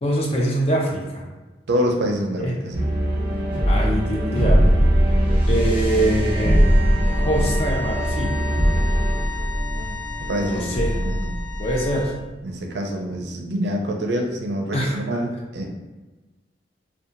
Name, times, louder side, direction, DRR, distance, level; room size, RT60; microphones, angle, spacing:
voice 1, 0.0-1.2 2.4-2.5 3.7-4.8 5.5-6.6 7.2-8.4 10.4-10.9 11.6-12.1 14.7-14.9, right 1 dB, 35° left, -2 dB, 0.5 m, -23 dB
voice 2, 1.7-2.9 9.7-9.9 10.2-11.3 12.4-15.7, equal, 70° right, 2 dB, 0.4 m, -26 dB
sound 1, 2.7-12.2, equal, 25° right, 0.9 m, -21 dB
sound 2, 6.0-12.1, left 2 dB, 85° left, 0.8 m, -35 dB
2.7 x 2.3 x 2.4 m, 1.2 s
head